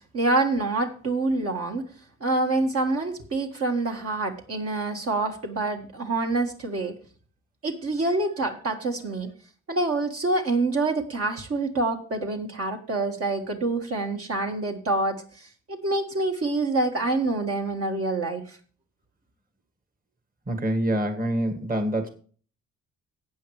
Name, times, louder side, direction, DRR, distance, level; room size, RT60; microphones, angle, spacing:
voice 1, 0.1-1.8 2.2-6.9 7.6-9.3 9.7-18.6, right 2 dB, 50° right, 2 dB, 1.7 m, -26 dB
voice 2, 20.5-22.1, right 1 dB, 30° right, 6 dB, 1.7 m, -26 dB
14.5 x 8.7 x 3.3 m, 0.42 s
cardioid pair, 90°, 30 cm